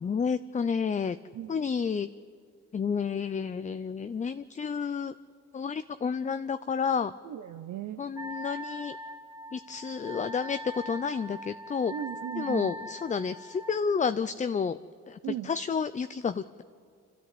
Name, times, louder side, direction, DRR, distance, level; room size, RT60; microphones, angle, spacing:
voice 1, 0.0-1.2 1.5-2.1 2.7-5.1 5.5-7.1 8.0-9.0 9.5-11.9 12.4-14.8 15.1-16.6, left 6 dB, 25° left, 12 dB, 0.5 m, -30 dB
voice 2, 7.2-8.0 11.9-12.7 15.2-15.5, right 11 dB, 75° right, 6 dB, 0.9 m, -37 dB
Wind instrument woodwind instrument, 8.2-13.8, equal, 10° right, 1.3 m, -41 dB
29.0 x 13.0 x 8.6 m, 2.3 s
cardioid pair, 90°, 30 cm